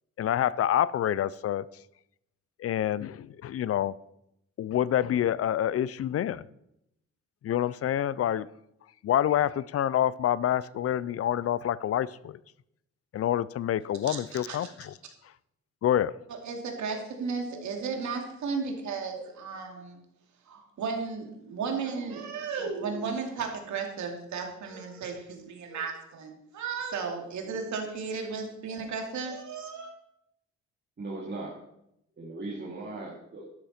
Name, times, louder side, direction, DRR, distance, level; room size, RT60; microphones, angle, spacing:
voice 1, 0.2-1.7 2.6-3.9 4.6-6.4 7.4-8.5 9.0-12.4 13.1-14.9 15.8-16.1, left 11 dB, 50° left, 19 dB, 0.5 m, -27 dB
voice 2, 14.0-14.7 16.3-20.0 20.5-29.9, right 5 dB, 70° right, 2 dB, 2.6 m, -34 dB
voice 3, 31.0-31.6 32.2-33.5, right 2 dB, 35° right, -5 dB, 2.8 m, -38 dB
12.0 x 11.0 x 4.4 m, 0.80 s
cardioid pair, 90°, 30 cm